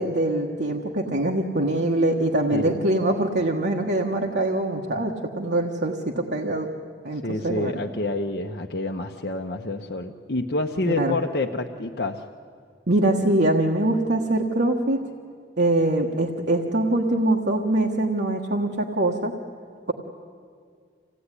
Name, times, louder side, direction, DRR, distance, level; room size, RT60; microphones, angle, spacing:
voice 1, 0.0-6.7 7.0-7.7 10.8-11.2 12.9-15.0 15.6-19.3, right 1 dB, 70° right, 0 dB, 1.4 m, -23 dB
voice 2, 7.2-12.2, left 2 dB, 60° left, 3 dB, 0.9 m, -28 dB
26.0 x 17.0 x 9.9 m, 2.1 s
head